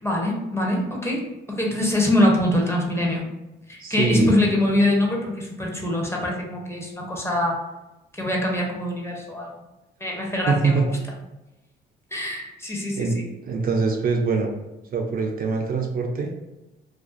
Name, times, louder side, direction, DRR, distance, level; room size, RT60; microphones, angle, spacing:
voice 1, 0.0-3.3 3.7-7.6 8.1-9.5 10.0-10.9 12.1-13.2, left 1 dB, 15° left, -1 dB, 0.6 m, -24 dB
voice 2, 3.8-4.4 10.5-10.9 13.0-13.1 13.4-14.5 14.9-16.3, right 4 dB, 50° right, 2 dB, 0.4 m, -23 dB
2.4 x 2.2 x 2.4 m, 0.98 s
cardioid pair, 90°, 20 cm